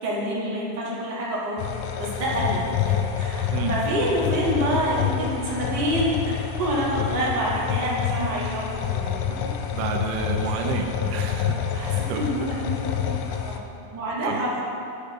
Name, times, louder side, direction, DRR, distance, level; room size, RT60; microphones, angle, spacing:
voice 1, 0.0-1.6 2.0-6.2 6.6-9.2 11.7-12.8 13.0-13.2 13.4-13.6 13.9-14.6, right 1 dB, 40° right, -7 dB, 1.7 m, -27 dB
sound 1, 1.6-13.6, left 9 dB, 85° left, 2.5 m, -28 dB
voice 2, 9.7-12.2 14.2-14.4, right 6 dB, 90° right, 2 dB, 2.7 m, -30 dB
10.0 x 5.4 x 5.3 m, 2.7 s
omnidirectional pair, 4.4 m